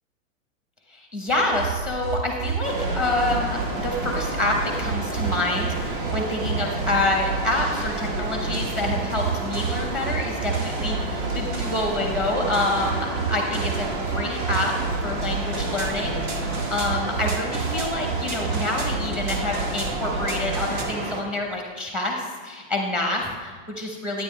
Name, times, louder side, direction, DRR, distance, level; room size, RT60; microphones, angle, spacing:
voice 1, 0.9-14.7 15.0-24.2, left 2 dB, ahead, 1 dB, 0.9 m, -27 dB
sound 1, 1.3-20.8, right 4 dB, 80° right, 1.8 m, -30 dB
sound 2, 2.6-21.2, right 2 dB, 40° right, 1.1 m, -31 dB
9.6 x 9.4 x 3.3 m, 1.5 s
supercardioid pair, 165°, 39 cm